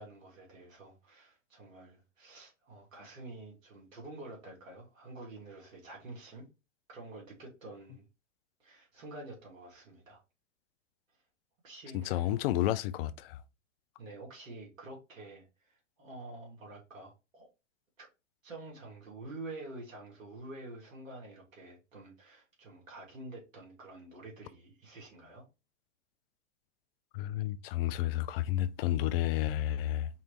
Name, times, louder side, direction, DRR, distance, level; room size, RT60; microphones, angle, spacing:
voice 1, 0.0-6.5 6.9-8.1 8.6-10.2 11.6-12.3 14.0-15.7 16.0-17.5 18.0-18.1 18.4-25.5, right 2 dB, 90° right, 2.5 m, -48 dB
voice 2, 11.9-13.4 27.1-30.1, left 13 dB, 50° left, 0.5 m, -31 dB
5.5 x 3.2 x 3.0 m
hypercardioid pair, 110°, 38 cm